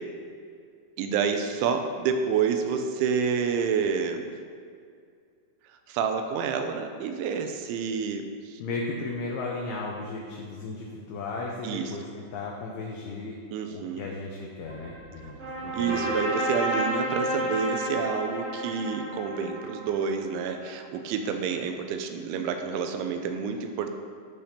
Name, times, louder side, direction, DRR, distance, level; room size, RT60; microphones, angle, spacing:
voice 1, 1.0-4.3 5.9-8.6 11.6-11.9 13.5-14.1 15.7-23.9, right 6 dB, 85° right, 6 dB, 3.0 m, -28 dB
voice 2, 8.6-13.4 13.7-16.1, left 3 dB, 85° left, -1 dB, 2.2 m, -35 dB
sound 1, 14.7-20.6, equal, 45° right, 1.2 m, -31 dB
14.0 x 5.1 x 2.8 m, 2.3 s
omnidirectional pair, 5.4 m